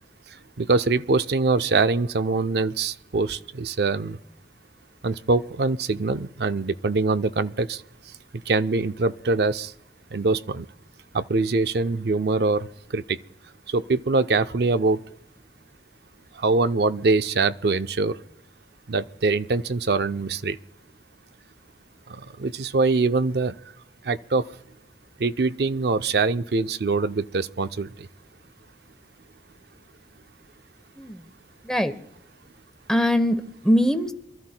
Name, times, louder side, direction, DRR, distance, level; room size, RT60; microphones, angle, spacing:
voice 1, 0.6-4.2 5.0-7.8 8.5-9.7 10.1-10.7 11.1-12.7 12.9-13.2 13.7-15.0 16.4-18.2 18.9-20.6 22.1-23.6 24.0-24.4 25.2-28.1, right 3 dB, 65° right, 0.5 m, -23 dB
voice 2, 31.0-31.3 31.6-31.9 32.9-34.1, equal, 5° left, 0.8 m, -22 dB
28.0 x 13.0 x 2.2 m
head